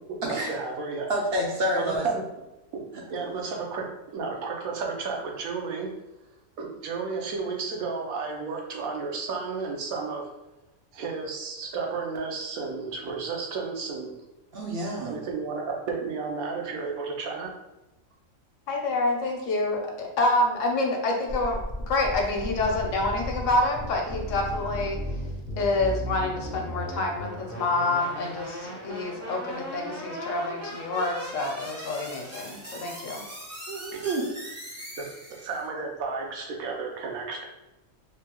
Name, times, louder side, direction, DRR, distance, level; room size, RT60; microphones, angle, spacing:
voice 1, 0.1-1.1 1.7-2.2 3.1-3.9 4.1-6.0 6.6-10.3 10.9-14.1 15.0-17.5 33.9-34.2 35.0-35.1 35.3-37.4, right 4 dB, 90° right, 0 dB, 1.1 m, -32 dB
voice 2, 1.1-2.0 14.5-15.2 33.7-34.2, right 1 dB, 65° right, -1 dB, 0.6 m, -28 dB
voice 3, 18.7-21.6 21.9-25.0 25.6-33.2, left 2 dB, 70° left, 1 dB, 0.9 m, -27 dB
sound 1, 21.3-35.7, equal, 25° right, 0.3 m, -37 dB
3.4 x 2.2 x 2.8 m, 0.99 s
omnidirectional pair, 1.4 m